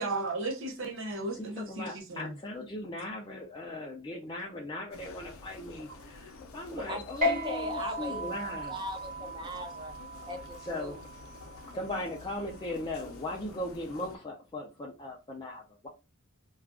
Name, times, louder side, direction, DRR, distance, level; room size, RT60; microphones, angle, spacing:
voice 1, 0.0-2.3, right 2 dB, 65° right, 0.6 m, -35 dB
voice 2, 1.3-8.8 10.6-11.0 11.7-15.9, left 1 dB, 20° left, 0.4 m, -38 dB
sound 1, 4.9-14.2, left 3 dB, 85° left, 0.6 m, -50 dB
voice 3, 6.7-10.0 10.2-11.0, equal, 20° right, 0.6 m, -40 dB
sound 2, 7.2-14.0, left 1 dB, 40° right, 0.9 m, -37 dB
2.4 x 2.3 x 3.5 m
head